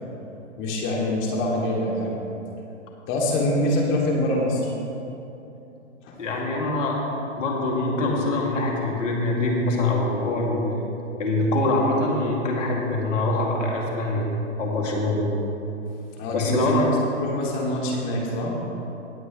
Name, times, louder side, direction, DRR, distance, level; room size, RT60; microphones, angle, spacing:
voice 1, 0.6-2.2 3.1-4.7 6.0-6.2 16.2-16.9 17.2-18.5, left 1 dB, 30° left, -2 dB, 2.5 m, -25 dB
voice 2, 6.2-6.9 7.4-10.8 11.2-14.3 14.6-15.3 16.3-16.9, left 2 dB, 75° left, -2 dB, 2.6 m, -24 dB
20.0 x 7.8 x 3.2 m, 2.9 s
hypercardioid pair, 130°, 37 cm